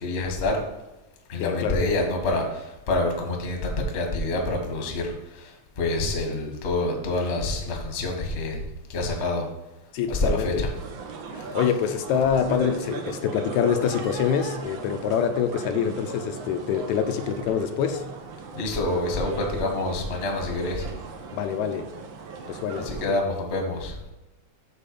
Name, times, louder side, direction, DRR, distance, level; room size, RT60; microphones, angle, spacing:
voice 1, 0.0-0.6 1.3-5.1 5.8-8.6 8.9-9.4 10.1-10.7 18.5-20.9 22.8-23.9, left 2 dB, 40° left, 2 dB, 1.0 m, -27 dB
voice 2, 1.4-1.8 9.9-10.7 11.3-18.1 21.3-21.9 22.5-22.9, left 7 dB, 80° left, 7 dB, 1.9 m, -25 dB
sound 1, 10.7-23.1, right 4 dB, 85° right, 1.0 m, -38 dB
7.4 x 4.5 x 6.8 m, 1.0 s
omnidirectional pair, 3.4 m